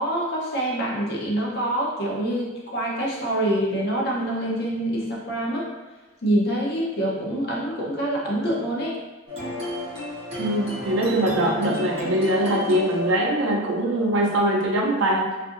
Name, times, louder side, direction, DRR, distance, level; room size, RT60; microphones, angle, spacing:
voice 1, 0.0-5.7 6.2-9.0, right 1 dB, 50° left, -4 dB, 0.6 m, -25 dB
sound 1, 9.3-14.8, left 1 dB, 30° right, 0.9 m, -32 dB
voice 2, 10.4-15.4, right 1 dB, 80° right, 0 dB, 0.5 m, -22 dB
2.6 x 2.4 x 2.4 m, 1.2 s
head